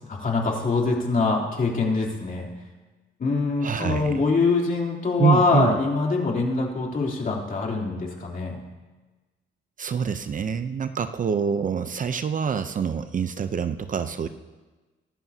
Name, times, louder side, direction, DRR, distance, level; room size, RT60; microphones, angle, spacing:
voice 1, 0.1-2.5 3.2-8.6, left 3 dB, 45° left, -1 dB, 3.3 m, -24 dB
voice 2, 3.6-4.2 5.2-5.8 9.8-14.3, right 6 dB, 40° right, 10 dB, 0.7 m, -26 dB
23.5 x 12.0 x 2.8 m, 1.2 s
cardioid pair, 90°, 20 cm